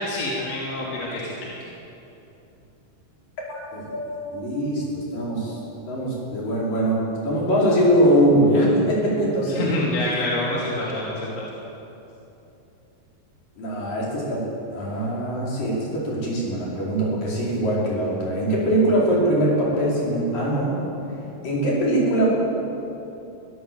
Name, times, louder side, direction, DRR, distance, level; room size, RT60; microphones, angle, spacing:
voice 1, 0.0-1.7 9.5-11.4, left 1 dB, 45° left, -5 dB, 3.8 m, -27 dB
voice 2, 3.5-5.6 5.9-9.6 13.6-20.8 21.4-22.3, right 1 dB, 60° left, -5 dB, 6.6 m, -22 dB
22.5 x 16.0 x 7.8 m, 2.9 s
omnidirectional pair, 4.4 m